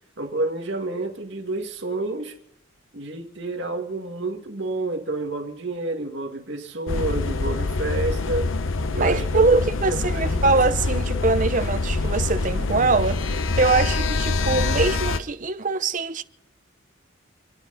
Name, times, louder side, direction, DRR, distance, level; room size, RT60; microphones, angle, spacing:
voice 1, 0.2-2.4 2.9-8.5 8.9-9.6 9.9-10.6, right 2 dB, 60° right, 2.2 m, -29 dB
sound 1, 6.9-15.2, left 3 dB, 75° left, 0.9 m, -25 dB
voice 2, 8.9-16.2, right 3 dB, 40° right, 0.8 m, -23 dB
30.0 x 10.0 x 4.1 m
head